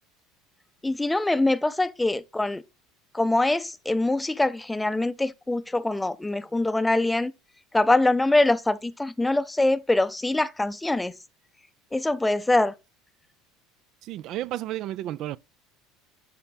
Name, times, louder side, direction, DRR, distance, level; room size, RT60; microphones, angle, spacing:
voice 1, 0.8-2.6 3.1-7.3 7.7-11.1 11.9-12.7, left 2 dB, 10° left, 0.5 m, -24 dB
voice 2, 14.0-15.4, right 14 dB, 55° right, 0.3 m, -32 dB
12.5 x 4.4 x 2.2 m
supercardioid pair, 105°, 0 cm